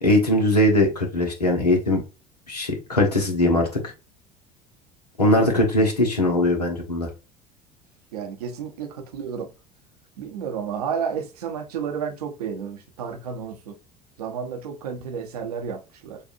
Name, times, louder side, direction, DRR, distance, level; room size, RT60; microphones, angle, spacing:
voice 1, 0.0-2.0 2.5-3.9 5.2-7.1, left 1 dB, 85° left, 1.2 m, -20 dB
voice 2, 8.1-9.5 10.2-13.7 14.2-16.2, right 7 dB, 70° right, 0.8 m, -31 dB
6.6 x 2.5 x 2.6 m
figure-of-eight pair, 65°, 20 cm